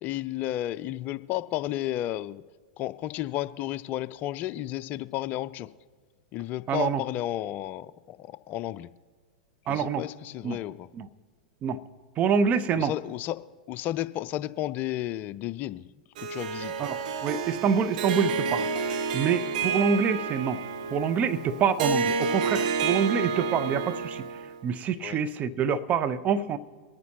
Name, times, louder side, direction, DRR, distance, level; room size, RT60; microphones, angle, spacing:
voice 1, 0.0-2.4 2.8-5.7 6.3-8.9 9.7-10.9 12.7-15.9 16.2-16.9 25.0-25.2, left 13 dB, 35° left, 15 dB, 0.5 m, -32 dB
voice 2, 6.7-7.0 9.7-10.0 10.4-10.6 10.9-11.1 11.6-11.8 12.2-12.9 16.8-20.6 20.9-24.3 24.6-26.6, right 6 dB, 30° right, 11 dB, 0.8 m, -26 dB
Harp, 16.2-24.6, right 5 dB, 60° right, 0.9 m, -30 dB
23.5 x 9.4 x 2.9 m, 1.5 s
figure-of-eight pair, 100°, 5 cm